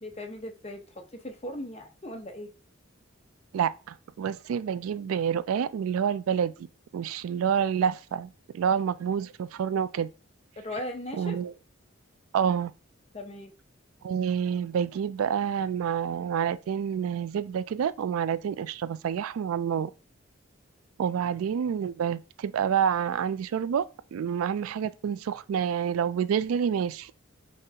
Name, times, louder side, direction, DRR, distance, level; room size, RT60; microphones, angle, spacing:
voice 1, 0.0-2.5 10.6-11.4 13.1-13.5, left 1 dB, 30° left, 0.7 m, -38 dB
voice 2, 3.5-6.7 6.9-10.1 11.2-11.5 12.3-12.7 14.0-19.9 21.0-27.1, right 8 dB, 85° right, 0.3 m, -28 dB
5.3 x 3.2 x 2.8 m
head